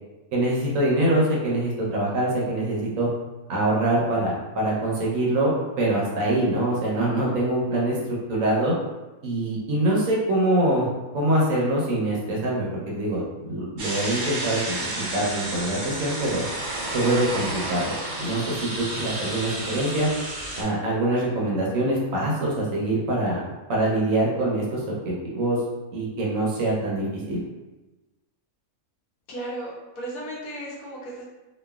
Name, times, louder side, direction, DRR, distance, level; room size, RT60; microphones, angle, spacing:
voice 1, 0.3-3.1 3.5-8.0 8.3-8.7 9.2-10.9 11.1-16.4 16.9-17.9 18.2-18.7 19.0-20.1 20.6-23.4 23.7-25.6 25.9-27.4, right 1 dB, 70° right, -4 dB, 1.0 m, -24 dB
sound 1, 13.8-20.6, right 1 dB, 90° right, 0.4 m, -31 dB
voice 2, 29.3-31.2, right 1 dB, 70° left, -6 dB, 1.1 m, -35 dB
3.0 x 2.3 x 2.2 m, 1.1 s
omnidirectional pair, 1.6 m